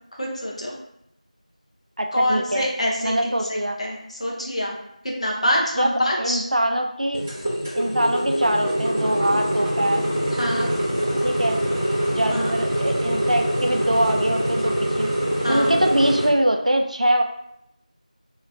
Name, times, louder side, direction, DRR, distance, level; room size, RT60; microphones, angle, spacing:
voice 1, 0.2-0.8 2.1-4.7 5.0-6.4 10.4-10.7 12.3-12.6 15.4-15.7, equal, 50° left, -3 dB, 1.1 m, -25 dB
voice 2, 2.0-2.7 3.0-3.8 5.8-7.2 7.7-10.1 11.2-11.6 12.1-15.1 15.5-17.2, right 1 dB, 65° right, 3 dB, 0.5 m, -23 dB
sound 1, 7.1-16.3, right 1 dB, 10° right, 0.9 m, -24 dB
3.2 x 3.0 x 3.9 m, 0.80 s
figure-of-eight pair, 180°, 4 cm